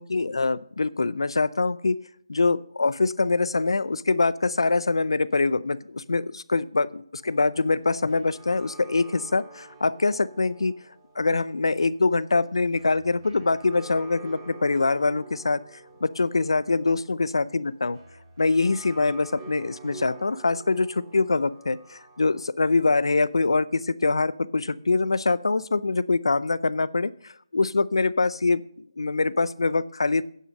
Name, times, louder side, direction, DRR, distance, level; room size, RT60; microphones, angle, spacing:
voice 1, 0.0-2.0 2.3-10.7 11.2-15.6 16.0-18.0 18.4-28.6 29.0-30.2, left 3 dB, 70° left, 19 dB, 0.6 m, -24 dB
sound 1, 7.2-22.4, right 3 dB, 20° right, 2.4 m, -48 dB
9.4 x 6.2 x 6.5 m, 0.63 s
figure-of-eight pair, 165°, 3 cm